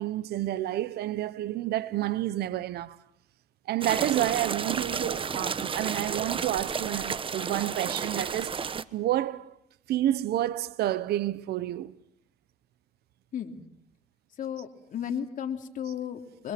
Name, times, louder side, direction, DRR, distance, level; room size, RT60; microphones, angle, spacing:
voice 1, 0.0-3.0 3.7-8.6 8.9-9.5 9.9-12.0 15.9-16.0, right 13 dB, 70° right, 1.1 m, -29 dB
sound 1, 3.8-8.8, right 6 dB, 30° right, 1.2 m, -32 dB
voice 2, 14.4-16.5, left 8 dB, 50° left, 3.3 m, -34 dB
28.5 x 24.5 x 6.1 m
cardioid pair, 110°, 17 cm